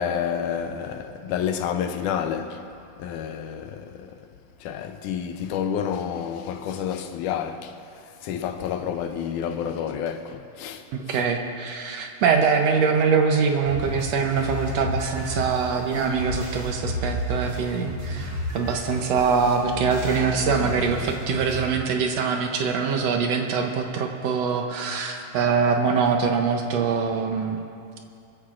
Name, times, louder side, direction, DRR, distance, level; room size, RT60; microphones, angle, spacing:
voice 1, 0.0-2.6 3.0-4.2 4.6-7.7 8.2-10.8, left 8 dB, 80° left, 2.0 m, -29 dB
voice 2, 10.9-27.6, right 5 dB, 75° right, 1.5 m, -23 dB
sound 1, 13.7-21.7, equal, 30° right, 3.2 m, -31 dB
23.0 x 14.5 x 2.5 m
omnidirectional pair, 3.9 m